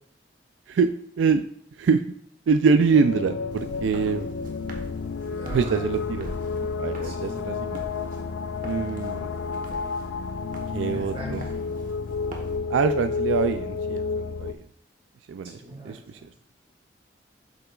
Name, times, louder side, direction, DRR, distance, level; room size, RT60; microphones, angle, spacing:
voice 1, 0.7-1.4 1.8-2.0 2.5-4.3 5.5-6.3 6.8-7.9 8.6-9.3 10.7-11.4 12.7-14.1 14.4-14.7 15.3-16.2, right 5 dB, 90° right, 9 dB, 0.3 m, -24 dB
sound 1, 2.9-14.5, left 4 dB, 90° left, 0.4 m, -31 dB
Walk footsteps, 3.5-12.6, right 1 dB, 50° right, 1.1 m, -43 dB
voice 2, 5.3-5.9 7.0-7.4 10.9-11.5 15.4-16.4, right 1 dB, 30° right, -2 dB, 2.0 m, -40 dB
8.2 x 6.8 x 2.4 m, 0.64 s
head